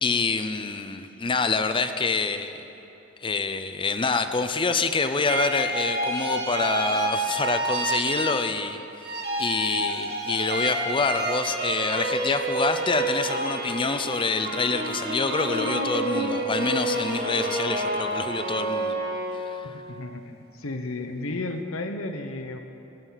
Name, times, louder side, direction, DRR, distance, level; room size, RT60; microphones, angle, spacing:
voice 1, 0.0-2.6 3.2-19.0 19.4-19.7, left 4 dB, 25° left, 9 dB, 0.6 m, -27 dB
sound 1, 5.3-8.7 9.0-19.6, right 2 dB, 50° right, 1.6 m, -28 dB
voice 2, 19.6-22.6, left 2 dB, 80° left, 6 dB, 1.1 m, -33 dB
17.5 x 14.0 x 4.1 m, 2.9 s
head